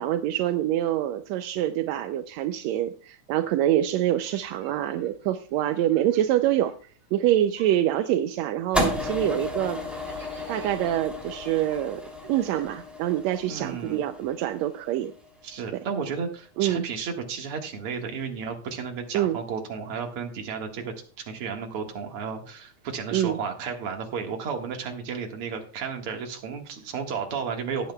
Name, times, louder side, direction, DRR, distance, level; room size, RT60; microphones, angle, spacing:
voice 1, 0.0-6.7 7.1-9.8 10.5-15.1 16.6-16.8 19.1-19.4 23.1-23.4, right 12 dB, 80° right, 9 dB, 1.6 m, -25 dB
sound 1, 4.1-7.2 7.5-13.5, right 3 dB, 20° right, 3.8 m, -53 dB
sound 2, 8.7-15.1, left 2 dB, ahead, 2.2 m, -33 dB
voice 2, 13.4-14.0 15.4-20.9 21.3-27.9, right 6 dB, 50° right, 3 dB, 2.3 m, -33 dB
18.0 x 8.6 x 2.3 m, 0.41 s
omnidirectional pair, 3.6 m